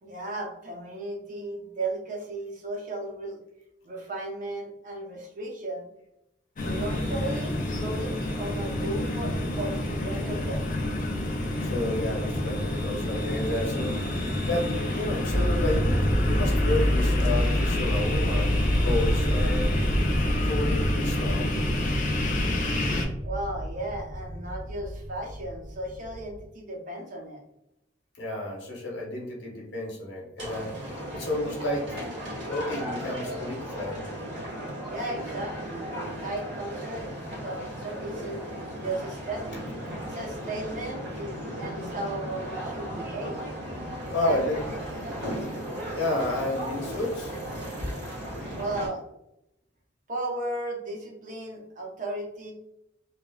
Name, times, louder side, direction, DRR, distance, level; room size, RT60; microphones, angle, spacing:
voice 1, 0.0-3.4 3.8-5.9 6.6-10.7 23.2-27.4 34.9-37.1 37.4-38.4 38.8-39.7 40.1-43.4 44.2-44.5 44.9-45.2 48.6-49.0 50.1-52.5, right 2 dB, 45° right, 0 dB, 0.6 m, -35 dB
sound 1, 6.6-23.0, left 1 dB, 45° left, 0.4 m, -29 dB
voice 2, 11.6-19.8 20.4-21.5 28.2-32.0 32.5-34.0 44.1-44.6 45.9-47.4, left 2 dB, 85° left, -2 dB, 0.9 m, -31 dB
sound 2, 15.3-26.4, equal, 5° right, 1.0 m, -27 dB
sound 3, 30.4-48.9, equal, 85° right, 1.3 m, -36 dB
3.1 x 2.1 x 2.3 m, 0.82 s
head